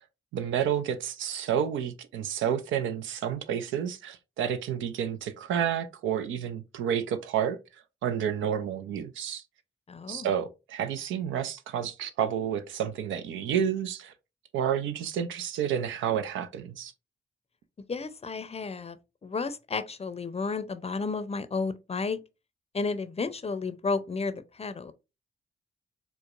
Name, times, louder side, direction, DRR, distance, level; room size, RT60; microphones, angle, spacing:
voice 1, 0.3-7.6 8.0-9.4 10.1-14.1 14.5-16.9, right 9 dB, 85° right, 0.4 m, -30 dB
voice 2, 9.9-10.3 17.9-19.0 19.2-22.2 22.7-24.9, left 4 dB, 30° left, 0.5 m, -32 dB
4.6 x 2.1 x 2.4 m
supercardioid pair, 45°, 19 cm